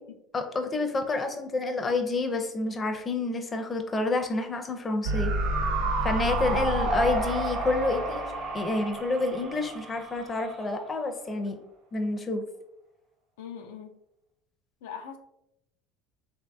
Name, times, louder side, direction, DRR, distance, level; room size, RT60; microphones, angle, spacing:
voice 1, 0.3-5.3 6.0-11.6 11.9-12.4, left 2 dB, 25° left, 5 dB, 0.5 m, -29 dB
sound 1, 5.0-10.3 10.6-10.7, right 2 dB, 75° right, 1.1 m, -29 dB
sound 2, 7.0-11.2, right 3 dB, 40° right, 0.5 m, -42 dB
voice 2, 13.4-13.9 14.8-15.2, left 7 dB, 85° left, 4 dB, 0.3 m, -41 dB
3.1 x 2.6 x 2.2 m, 0.81 s
supercardioid pair, 95°, 0 cm